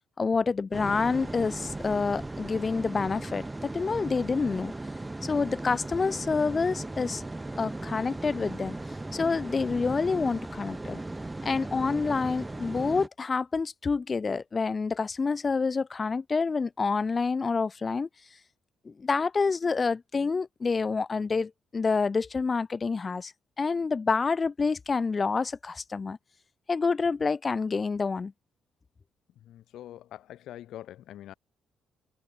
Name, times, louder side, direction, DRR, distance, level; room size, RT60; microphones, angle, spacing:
voice 1, 0.2-4.7 5.2-7.2 7.6-8.7 9.1-11.0 11.4-18.1 18.9-23.3 23.6-26.2 26.7-28.3, left 4 dB, 35° left, 0.3 m, -28 dB
sound 1, 0.7-13.1, right 2 dB, 15° right, 1.0 m, -37 dB
voice 2, 29.3-31.3, left 12 dB, 60° left, 5.0 m, -44 dB
figure-of-eight pair, 40°, 0 cm